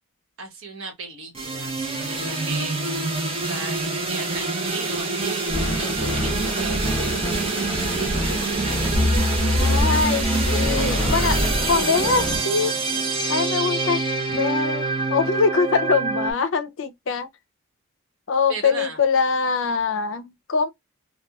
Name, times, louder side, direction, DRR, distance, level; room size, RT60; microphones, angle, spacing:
voice 1, 0.4-2.9 3.2-7.5 8.1-9.0 18.5-19.0, right 3 dB, 70° right, 1.1 m, -36 dB
sound 1, 1.3-16.3, right 3 dB, 25° right, 0.7 m, -26 dB
sound 2, 5.5-12.4, left 1 dB, 10° left, 0.8 m, -24 dB
voice 2, 9.6-11.4 11.7-12.7 13.3-14.0 14.3-17.3 18.3-20.7, left 5 dB, 65° left, 0.5 m, -23 dB
2.9 x 2.2 x 2.3 m
head